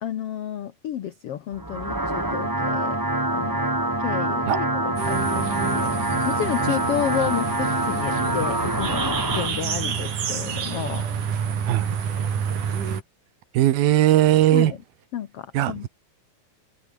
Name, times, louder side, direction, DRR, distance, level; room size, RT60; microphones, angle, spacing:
voice 1, 0.0-3.0 3.3-3.7 4.0-11.1 14.5-14.8 15.1-15.9, left 10 dB, 75° left, 1.3 m, -31 dB
sound 1, 1.5-9.5, right 1 dB, 20° right, 0.6 m, -25 dB
sound 2, 5.0-13.0, right 7 dB, 60° right, 4.4 m, -29 dB
voice 2, 13.5-14.7 15.5-15.9, right 13 dB, 80° right, 3.0 m, -19 dB
omnidirectional pair, 4.3 m